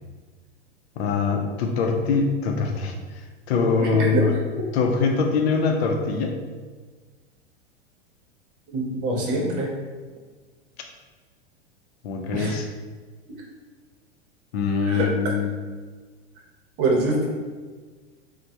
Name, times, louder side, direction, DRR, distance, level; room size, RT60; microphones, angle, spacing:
voice 1, 1.0-2.9 3.5-4.3 4.7-6.4 12.0-12.7 14.5-15.5, left 4 dB, 65° left, 3 dB, 0.6 m, -23 dB
voice 2, 3.8-4.2 8.7-9.7 12.3-12.6 14.8-15.1 16.8-17.3, right 2 dB, 50° right, -1 dB, 0.8 m, -24 dB
3.1 x 2.2 x 2.7 m, 1.4 s
hypercardioid pair, 100°, 34 cm